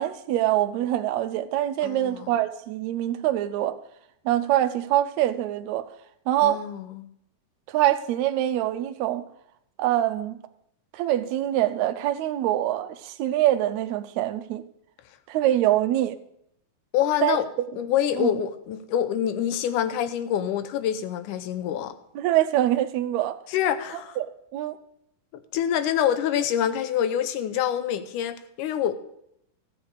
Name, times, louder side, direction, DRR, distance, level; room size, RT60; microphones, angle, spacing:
voice 1, 0.0-3.8 4.2-5.9 6.3-6.6 7.7-9.2 9.8-10.4 10.9-14.6 15.3-16.2 17.2-17.4 18.2-18.3 22.1-23.4 23.9-24.8, right 13 dB, 75° right, 1.8 m, -24 dB
voice 2, 1.8-2.3 6.4-7.1 16.9-17.5 17.8-21.9 23.5-24.2 25.3-28.9, left 10 dB, 85° left, 2.2 m, -26 dB
13.5 x 8.3 x 4.8 m
omnidirectional pair, 3.6 m